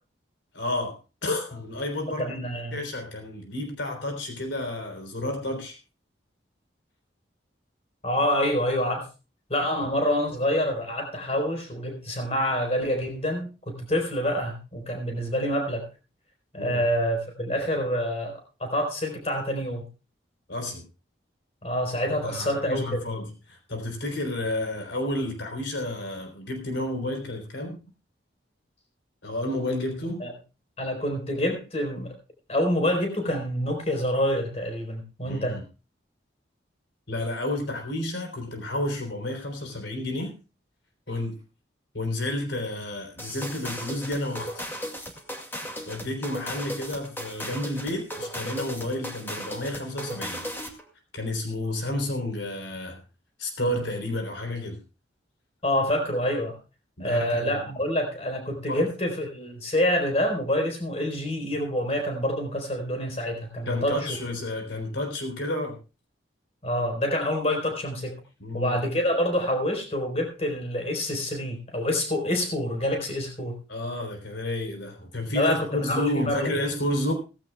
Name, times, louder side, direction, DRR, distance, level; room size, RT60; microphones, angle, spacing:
voice 1, 0.5-2.3 2.7-5.8 16.6-16.8 20.5-20.9 22.2-27.8 29.2-30.3 35.2-35.6 37.1-40.3 41.1-41.4 41.9-44.5 45.9-50.5 51.1-53.0 53.4-54.8 57.0-57.8 58.7-58.8 63.7-65.8 68.4-68.8 73.7-77.1, left 1 dB, 75° left, 4 dB, 3.7 m, -31 dB
voice 2, 2.2-2.8 8.0-9.1 9.5-15.9 16.5-19.9 21.6-23.0 30.2-30.3 30.8-32.2 32.5-35.6 55.6-56.6 57.0-64.1 66.6-68.2 68.5-73.5 75.3-76.5, equal, 35° left, 3 dB, 4.4 m, -27 dB
sound 1, 43.2-50.8, equal, 10° left, 2.2 m, -36 dB
18.0 x 15.5 x 2.3 m, 0.32 s
head